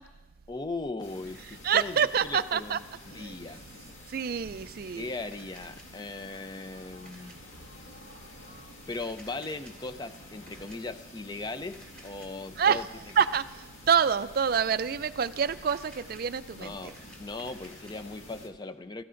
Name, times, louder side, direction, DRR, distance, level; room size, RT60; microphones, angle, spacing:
voice 1, 0.5-2.8 3.0-3.6 4.9-7.3 8.9-12.9 16.5-19.0, left 3 dB, 20° left, 10 dB, 0.4 m, -38 dB
sound 1, 1.0-18.5, left 1 dB, 80° left, 1.9 m, -49 dB
voice 2, 1.5-2.8 3.1-3.4 4.1-5.1 12.6-16.9, right 7 dB, 45° right, 14 dB, 0.3 m, -27 dB
Camera, 5.3-5.8 7.1-7.4 8.9-9.7 10.5-10.8 11.7-12.3 13.1-13.4 15.4-16.2 16.7-17.9, right 1 dB, 5° left, 2.4 m, -54 dB
26.0 x 14.5 x 2.6 m, 1.2 s
head